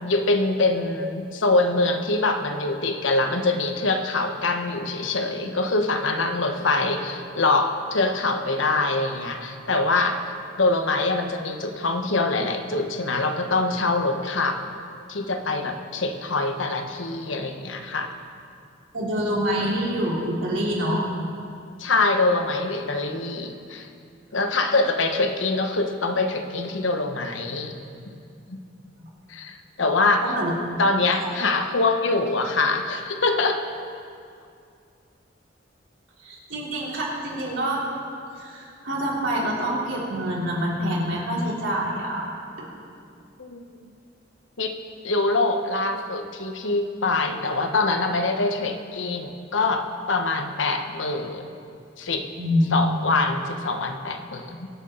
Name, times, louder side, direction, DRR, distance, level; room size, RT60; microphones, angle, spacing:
voice 1, 0.0-10.2 10.6-14.6 15.1-18.1 21.8-23.9 24.3-27.7 28.5-28.6 29.3-30.2 30.8-33.6 43.4-43.6 44.6-44.8 45.0-51.5 52.0-52.3 52.7-54.7, left 3 dB, 90° left, 6 dB, 1.1 m, -24 dB
voice 2, 18.9-21.1 29.0-29.1 30.2-30.5 36.2-37.9 38.4-42.2 42.6-42.7 52.3-52.6, equal, 85° right, -5 dB, 3.4 m, -26 dB
23.5 x 8.2 x 3.8 m, 2.4 s
head